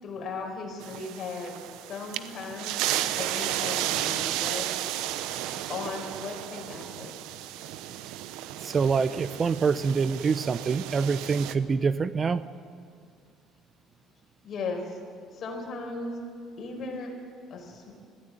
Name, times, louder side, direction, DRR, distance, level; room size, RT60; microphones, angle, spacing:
voice 1, 0.0-1.6 1.9-4.8 5.5-7.1 14.4-15.0 15.3-16.2 16.6-17.1 17.5-17.9, left 3 dB, 50° left, 2 dB, 5.1 m, -37 dB
sound 1, 0.8-11.6, right 13 dB, 85° right, 0.8 m, -33 dB
voice 2, 8.6-12.5, right 5 dB, 35° right, 14 dB, 0.6 m, -25 dB
21.5 x 15.0 x 8.7 m, 2.1 s
cardioid pair, 115°, 0 cm